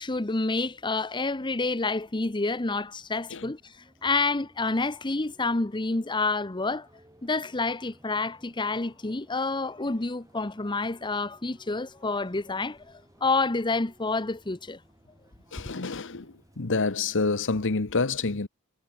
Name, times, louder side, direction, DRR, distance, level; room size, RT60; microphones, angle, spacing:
voice 1, 0.0-6.9 7.2-14.8, left 3 dB, 20° left, 0.9 m, -28 dB
sound 1, 1.8-17.7, right 1 dB, 15° right, 7.6 m, -60 dB
voice 2, 15.5-18.5, left 3 dB, 60° left, 1.1 m, -28 dB
head